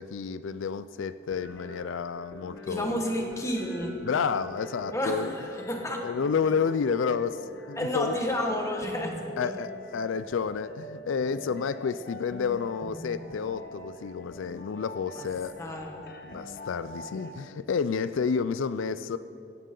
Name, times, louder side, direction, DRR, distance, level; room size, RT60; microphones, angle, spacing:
voice 1, 0.0-3.0 4.0-5.3 6.0-8.1 9.4-15.6 16.2-19.2, left 6 dB, 85° left, 14 dB, 0.4 m, -30 dB
sound 1, 1.3-17.3, left 1 dB, 55° left, 1.3 m, -44 dB
voice 2, 2.7-4.0 4.9-6.1 7.7-9.6 15.1-15.3 15.6-16.1, equal, 15° left, 2 dB, 1.6 m, -31 dB
17.5 x 15.5 x 3.9 m, 2.8 s
head